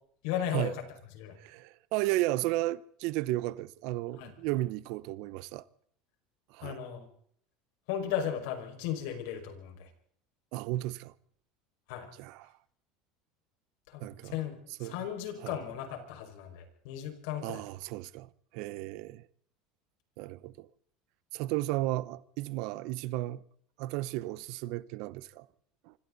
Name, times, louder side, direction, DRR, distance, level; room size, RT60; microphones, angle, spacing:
voice 1, 0.2-0.7 1.1-1.3 4.1-4.3 6.6-7.1 7.9-9.9 11.9-12.1 13.9-14.5 14.8-17.6, left 9 dB, 75° left, 5.7 m, -36 dB
voice 2, 1.4-5.6 6.5-6.8 10.5-11.1 12.2-12.5 14.0-14.4 14.8-15.0 15.4-15.6 17.4-19.3 20.2-20.7 21.3-23.4 23.8-25.5 25.9-26.0, right 17 dB, 60° right, 0.8 m, -34 dB
25.5 x 25.5 x 4.1 m
cardioid pair, 155°, 0 cm